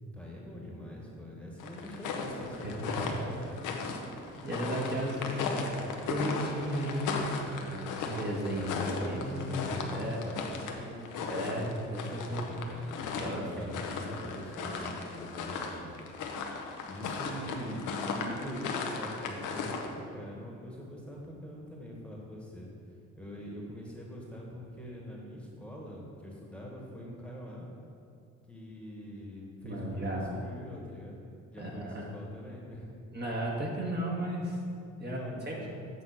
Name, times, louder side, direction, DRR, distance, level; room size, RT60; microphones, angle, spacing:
voice 1, 0.0-4.4 4.9-6.1 8.6-11.1 12.3-16.0 16.4-16.5 16.9-22.7 23.2-27.6 28.5-31.2 31.5-32.9 35.0-35.7, equal, 5° left, -3 dB, 1.4 m, -43 dB
sound 1, 1.6-19.9, left 4 dB, 85° left, 0.8 m, -37 dB
voice 2, 2.6-3.1 4.4-5.5 6.1-7.2 7.5-10.2 11.2-12.5 13.2-13.4 29.6-30.3 31.6-32.1 33.1-34.6 35.0-35.6, equal, 35° right, -3 dB, 1.4 m, -34 dB
8.0 x 3.7 x 6.4 m, 2.4 s
cardioid pair, 90°, 30 cm